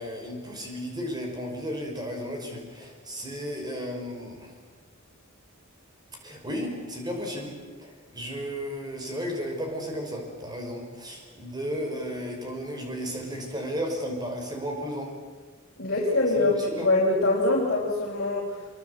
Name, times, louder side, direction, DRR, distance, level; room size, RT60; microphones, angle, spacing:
voice 1, 0.0-4.5 6.2-7.5 7.8-15.1 16.3-16.9, equal, 20° right, 2 dB, 5.5 m, -34 dB
voice 2, 15.8-18.6, left 2 dB, 50° left, -4 dB, 4.7 m, -24 dB
26.0 x 23.5 x 8.2 m, 1.4 s
head